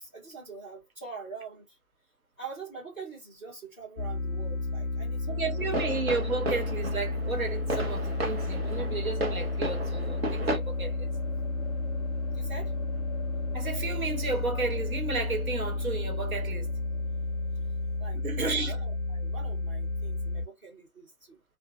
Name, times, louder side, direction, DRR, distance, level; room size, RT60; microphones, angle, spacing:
voice 1, 0.0-1.8 2.4-5.9 12.3-12.7 18.0-21.4, right 5 dB, 10° right, 0.7 m, -44 dB
sound 1, 4.0-20.5, left 2 dB, 70° left, 0.5 m, -32 dB
voice 2, 5.3-11.1 13.5-16.7 18.2-18.8, right 4 dB, 65° right, 1.1 m, -33 dB
sound 2, 5.6-10.6, right 1 dB, 40° right, 0.7 m, -34 dB
sound 3, 7.6-19.4, left 4 dB, 25° left, 0.7 m, -46 dB
2.4 x 2.2 x 2.6 m
figure-of-eight pair, 150°, 45 cm